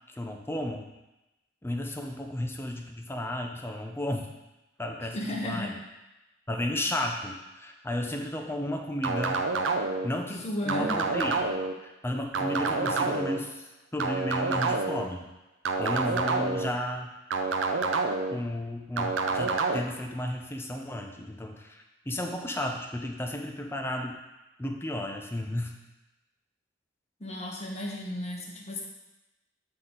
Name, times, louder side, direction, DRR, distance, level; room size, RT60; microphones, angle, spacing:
voice 1, 0.2-0.9 1.6-4.3 4.8-5.2 5.4-5.7 6.5-9.4 10.0-11.5 11.8-13.7 13.9-15.3 15.8-17.1 18.3-24.2 24.6-25.7, left 1 dB, 15° left, 3 dB, 0.6 m, -33 dB
voice 2, 5.1-5.7 10.4-11.0 27.2-28.8, left 1 dB, 35° left, -1 dB, 1.0 m, -34 dB
sound 1, 9.0-10.1 10.7-11.7 12.3-13.4 14.0-15.0 15.7-16.7 17.3-18.4 19.0-19.8, right 3 dB, 70° right, 0.5 m, -28 dB
7.8 x 3.9 x 3.8 m, 1.0 s
head